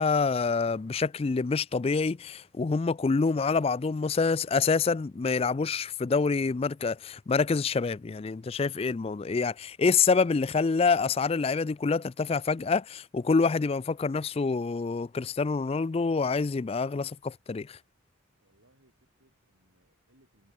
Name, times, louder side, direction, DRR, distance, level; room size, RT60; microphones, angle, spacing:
voice 1, 0.0-17.8, left 4 dB, 30° left, 0.3 m, -27 dB
voice 2, 18.4-20.5, right 1 dB, 70° right, 6.2 m, -67 dB
head